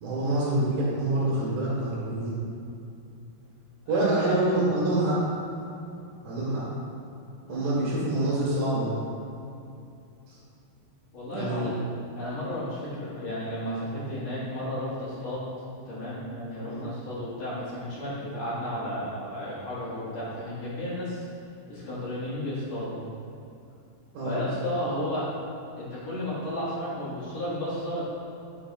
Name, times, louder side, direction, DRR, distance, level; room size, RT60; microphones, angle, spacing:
voice 1, 0.0-2.4 3.9-5.2 6.2-6.6 7.5-8.9 10.3-10.4 11.3-11.7 16.6-16.9 24.1-24.4, right 1 dB, 65° right, -7 dB, 3.0 m, -26 dB
voice 2, 3.9-4.4 7.5-7.7 11.1-11.8 12.2-15.5 15.9-21.2 21.7-23.0 24.2-25.3 25.8-28.0, equal, 50° left, -10 dB, 2.5 m, -33 dB
9.1 x 7.1 x 2.4 m, 2.7 s
omnidirectional pair, 4.7 m